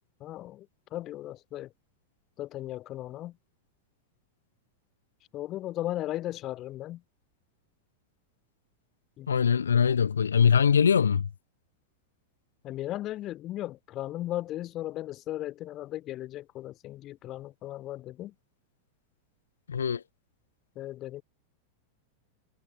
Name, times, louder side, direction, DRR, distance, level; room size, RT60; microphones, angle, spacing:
voice 1, 0.2-1.7 2.4-3.4 5.3-7.0 9.2-9.3 12.6-18.3 20.7-21.2, left 14 dB, 35° left, 3.0 m, -36 dB
voice 2, 9.3-11.3 19.7-20.0, left 7 dB, 70° left, 1.7 m, -22 dB
figure-of-eight pair, 90°, 0 cm